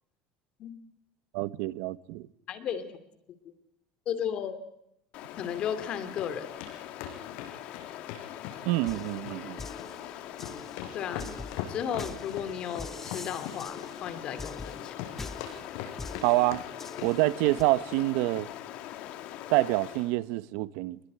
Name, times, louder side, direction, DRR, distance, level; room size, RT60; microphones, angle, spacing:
voice 1, 1.3-2.2 8.6-9.6 16.2-16.6 17.0-18.5 19.5-21.0, right 18 dB, 75° right, 1.1 m, -27 dB
voice 2, 2.5-2.9 3.4-3.5 4.1-4.6 5.4-6.5 10.9-11.3 11.7-15.0, left 8 dB, 45° left, 2.7 m, -34 dB
Stream, 5.1-20.2, left 12 dB, 60° left, 2.7 m, -43 dB
sound 1, 5.3-5.9 6.2-6.3 6.6-6.7 7.0-9.0 9.3-9.9 10.2-14.7 15.0-16.3 16.5-17.1 17.4-17.6 17.9-18.1 18.4-18.5 18.8-18.9, left 11 dB, 75° left, 6.3 m, -41 dB
sound 2, 8.9-17.6, left 3 dB, 15° left, 1.7 m, -44 dB
26.5 x 22.0 x 9.6 m
cardioid pair, 145°, 2 cm